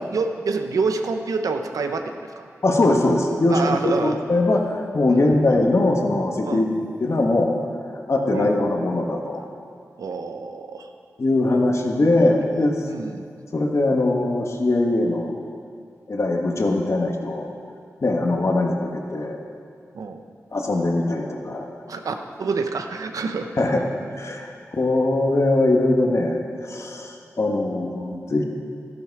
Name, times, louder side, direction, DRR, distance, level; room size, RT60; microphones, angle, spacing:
voice 1, 0.1-2.5 3.5-4.2 5.1-5.3 6.4-6.6 8.3-8.6 10.0-10.9 12.4-13.3 19.9-20.2 21.9-23.5, right 4 dB, 85° right, 6 dB, 0.8 m, -27 dB
voice 2, 2.6-7.6 8.1-9.5 11.2-12.8 13.5-15.4 16.1-17.5 18.0-19.4 20.5-21.6 23.6-23.8 24.2-28.4, left 2 dB, 55° left, 2 dB, 1.5 m, -21 dB
12.5 x 11.0 x 4.8 m, 2.3 s
cardioid pair, 55°, 6 cm